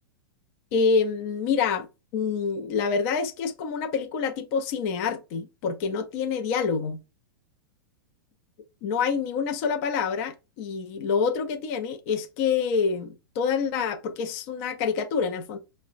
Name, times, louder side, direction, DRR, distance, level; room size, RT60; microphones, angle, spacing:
voice 1, 0.7-1.9 2.1-7.0 8.8-15.6, left 5 dB, 40° left, 0.5 m, -27 dB
4.5 x 2.1 x 2.4 m
supercardioid pair, 155°, 12 cm